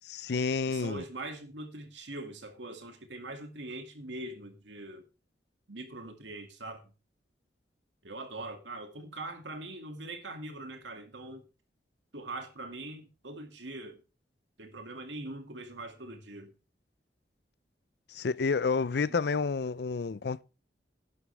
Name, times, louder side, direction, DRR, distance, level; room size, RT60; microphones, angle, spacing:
voice 1, 0.1-1.0 18.1-20.4, left 4 dB, 65° left, 0.5 m, -30 dB
voice 2, 0.7-5.0 5.7-6.9 8.0-11.4 12.1-14.0 14.6-16.5, right 2 dB, 85° right, 2.4 m, -42 dB
11.5 x 11.0 x 3.4 m
head